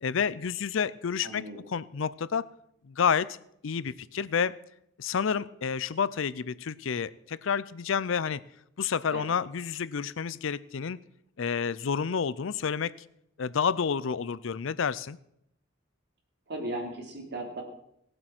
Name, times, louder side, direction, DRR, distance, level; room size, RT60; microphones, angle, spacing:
voice 1, 0.0-2.5 2.8-3.4 3.6-4.6 5.0-8.4 8.8-11.0 11.4-12.9 13.4-15.2, left 6 dB, 70° left, 19 dB, 0.5 m, -29 dB
voice 2, 1.2-1.6 9.1-9.3 16.5-17.6, right 1 dB, 60° right, 1 dB, 3.2 m, -36 dB
18.0 x 7.8 x 6.0 m, 0.75 s
head